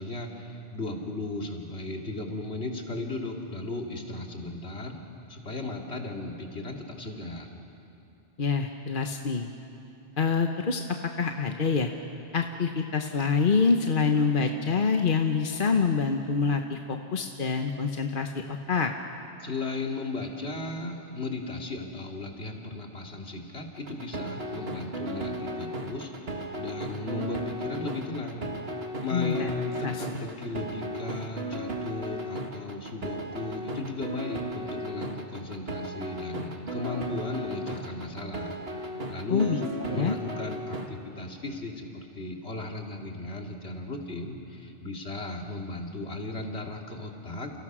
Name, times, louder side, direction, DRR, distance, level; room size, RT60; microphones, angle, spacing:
voice 1, 0.0-5.0 5.3-7.5 19.4-28.4 29.0-47.5, left 2 dB, 70° left, 1 dB, 2.9 m, -36 dB
voice 2, 8.4-9.5 10.2-10.8 11.2-11.9 12.3-18.9 29.1-29.5 29.8-30.2 39.3-39.6 39.9-40.1, left 5 dB, 50° left, 4 dB, 1.2 m, -26 dB
sound 1, 23.8-40.9, right 1 dB, 60° right, 2.1 m, -35 dB
30.0 x 29.5 x 6.2 m, 2.8 s
omnidirectional pair, 1.1 m